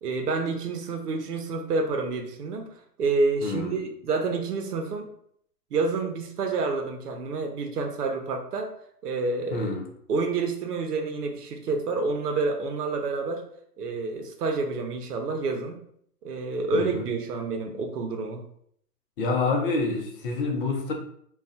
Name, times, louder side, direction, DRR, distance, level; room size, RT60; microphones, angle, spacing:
voice 1, 0.0-2.7 3.0-5.1 5.7-8.7 9.0-9.7 10.1-13.4 13.8-15.8 16.2-18.5, right 3 dB, 70° right, 4 dB, 0.8 m, -28 dB
voice 2, 3.4-3.7 9.5-9.9 16.7-17.0 19.2-20.9, left 3 dB, 35° left, 2 dB, 0.6 m, -27 dB
2.4 x 2.3 x 3.9 m, 0.67 s
hypercardioid pair, 135°, 48 cm